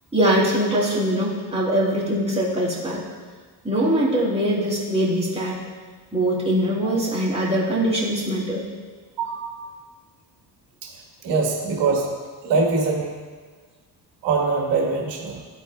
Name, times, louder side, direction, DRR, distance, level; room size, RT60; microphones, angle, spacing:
voice 1, 0.1-3.0 3.6-5.6 6.1-8.6 15.3-15.4, right 1 dB, 15° right, -6 dB, 2.0 m, -22 dB
voice 2, 11.2-12.1 12.4-13.1 14.2-15.4, right 4 dB, 85° right, -1 dB, 1.6 m, -22 dB
12.5 x 4.4 x 2.2 m, 1.5 s
cardioid pair, 100°, 41 cm